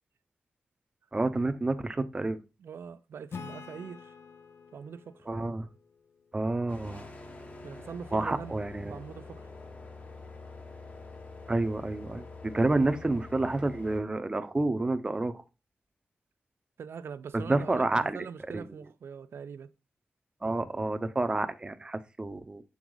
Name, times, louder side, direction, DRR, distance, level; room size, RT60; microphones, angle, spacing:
voice 1, 1.1-2.4 5.3-5.7 6.3-7.1 8.1-9.0 11.5-15.4 17.3-18.2 18.5-18.6 20.4-22.6, right 2 dB, 20° right, 0.6 m, -29 dB
voice 2, 2.6-4.1 4.7-5.3 7.6-8.6 8.9-9.5 12.6-12.8 16.8-19.7, right 6 dB, 80° right, 0.5 m, -43 dB
Acoustic guitar / Strum, 3.3-6.8, left 5 dB, 85° left, 0.7 m, -47 dB
sound 1, 6.7-14.0, left 3 dB, 35° left, 1.1 m, -46 dB
7.1 x 4.7 x 3.8 m
wide cardioid pair, 115°, 4 cm